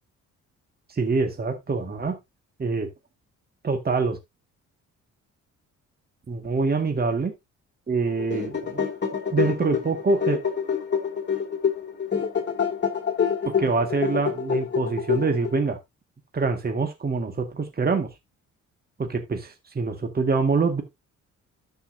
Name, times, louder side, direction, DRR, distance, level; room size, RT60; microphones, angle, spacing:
voice 1, 0.9-2.2 2.6-2.9 3.6-4.2 6.3-7.3 7.9-8.9 9.3-10.4 13.4-15.8 16.3-18.1 19.0-20.8, right 4 dB, 30° right, 1.9 m, -25 dB
sound 1, 8.1-15.7, left 7 dB, 35° left, 2.7 m, -27 dB
12.5 x 5.7 x 2.7 m
cardioid pair, 90°, 30 cm